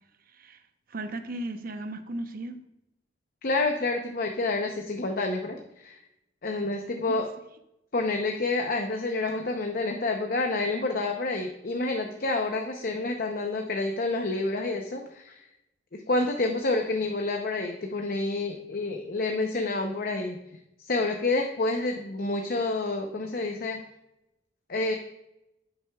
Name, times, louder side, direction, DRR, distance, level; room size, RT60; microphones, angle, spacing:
voice 1, 0.9-2.6 7.1-7.2, right 1 dB, 50° right, 8 dB, 0.8 m, -35 dB
voice 2, 3.4-6.0 6.4-7.3 7.9-15.4 15.9-20.4 20.9-23.8 24.7-24.9, left 2 dB, 50° left, 3 dB, 0.7 m, -28 dB
10.5 x 7.7 x 2.3 m, 0.88 s
head